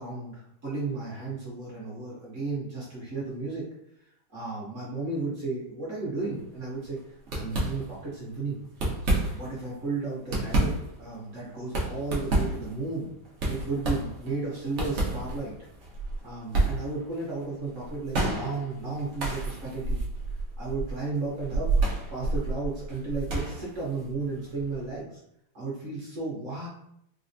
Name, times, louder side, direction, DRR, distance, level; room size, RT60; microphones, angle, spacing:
voice 1, 0.0-3.6 4.3-7.0 7.3-8.6 9.2-13.1 13.4-15.5 16.2-20.0 20.6-21.8 22.1-25.2 25.5-26.7, right 3 dB, 50° right, -6 dB, 1.0 m, -34 dB
sound 1, 6.3-6.6 6.8-7.0 7.3-8.2 8.6-9.6 10.0-25.0, right 2 dB, 70° right, 0.6 m, -30 dB
4.0 x 2.0 x 2.6 m, 0.74 s
omnidirectional pair, 2.2 m